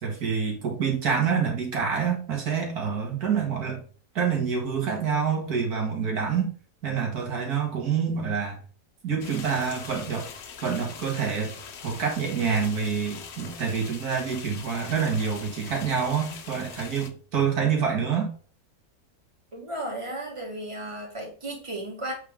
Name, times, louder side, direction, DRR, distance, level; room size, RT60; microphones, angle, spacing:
voice 1, 0.0-3.8 4.2-6.5 6.8-8.6 9.0-10.3 10.6-11.5 11.8-18.3, right 6 dB, 60° right, 1 dB, 2.1 m, -27 dB
sound 1, 9.2-17.1, left 6 dB, 60° left, 0.7 m, -42 dB
voice 2, 19.5-22.1, right 1 dB, 20° right, -1 dB, 1.8 m, -34 dB
8.1 x 3.6 x 3.6 m, 0.40 s
omnidirectional pair, 1.9 m